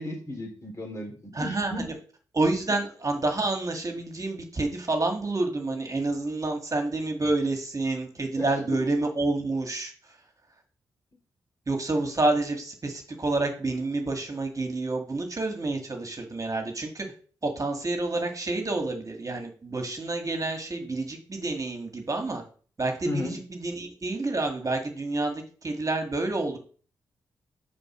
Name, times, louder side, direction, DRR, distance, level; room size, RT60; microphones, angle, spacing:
voice 1, 0.0-1.9 8.4-8.8 23.0-23.3, left 1 dB, 30° left, 1 dB, 3.3 m, -34 dB
voice 2, 1.3-1.9 2.3-9.9 11.7-17.1 17.4-22.4 22.8-26.6, right 2 dB, 35° right, 4 dB, 1.9 m, -28 dB
5.4 x 5.3 x 6.0 m, 0.42 s
supercardioid pair, 45°, 9 cm